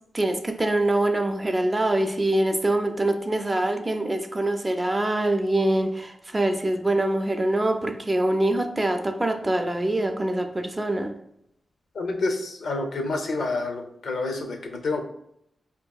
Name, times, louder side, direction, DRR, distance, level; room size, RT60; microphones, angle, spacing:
voice 1, 0.1-11.1, right 1 dB, 20° right, 6 dB, 0.3 m, -24 dB
voice 2, 11.9-15.0, left 3 dB, 75° left, 4 dB, 0.5 m, -28 dB
4.6 x 2.6 x 2.2 m, 0.75 s
wide cardioid pair, 145°, 0 cm